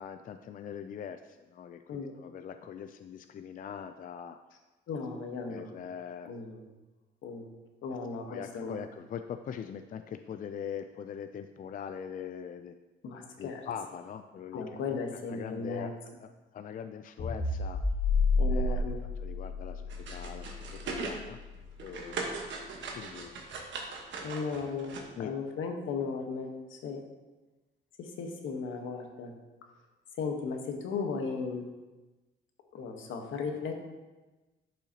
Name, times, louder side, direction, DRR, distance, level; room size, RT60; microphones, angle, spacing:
voice 1, 0.0-4.4 5.5-6.3 8.3-12.8 13.4-15.0 15.3-15.9 16.2-17.8 18.5-18.9 19.2-21.4 21.8-22.4 22.9-23.3 25.1-25.3, left 8 dB, 45° left, 8 dB, 0.4 m, -42 dB
voice 2, 4.9-5.9 6.2-6.6 7.2-7.5 7.8-8.7 13.0-13.6 14.5-15.9 18.4-19.0 24.2-27.0 28.0-29.3 30.2-31.7 32.7-33.7, left 5 dB, 80° left, 3 dB, 1.2 m, -36 dB
sound 1, 17.2-21.7, left 3 dB, 60° left, 1.7 m, -30 dB
sound 2, 19.9-21.2 21.6-25.0, right 4 dB, 70° right, 1.3 m, -39 dB
10.5 x 5.5 x 2.9 m, 1.2 s
cardioid pair, 90°, 20 cm